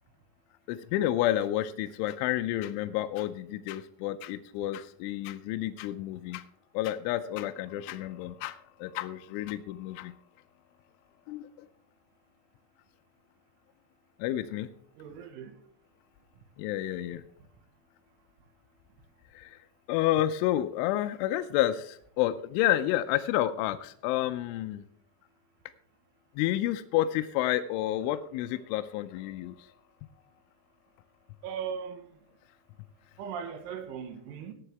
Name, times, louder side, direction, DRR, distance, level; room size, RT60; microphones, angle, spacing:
voice 1, 0.7-6.4 6.7-10.1 11.3-11.7 14.2-14.7 16.6-17.2 19.3-19.6 19.9-24.8 26.4-29.7, left 13 dB, 85° left, 3.0 m, -30 dB
voice 2, 15.0-15.6 31.4-32.1 33.2-34.5, right 7 dB, 80° right, 3.6 m, -38 dB
16.5 x 8.8 x 3.3 m
omnidirectional pair, 5.7 m